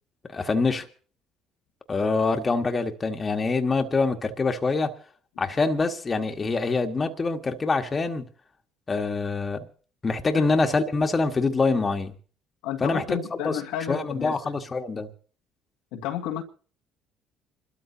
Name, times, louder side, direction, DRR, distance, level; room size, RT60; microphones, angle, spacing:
voice 1, 0.3-0.9 1.9-4.9 5.4-8.2 8.9-9.7 10.0-12.1 12.8-13.6 13.9-15.1, left 3 dB, 30° left, 1.6 m, -25 dB
voice 2, 12.6-14.4 15.9-16.4, left 10 dB, 85° left, 1.8 m, -31 dB
27.5 x 13.0 x 2.9 m
supercardioid pair, 75°, 0 cm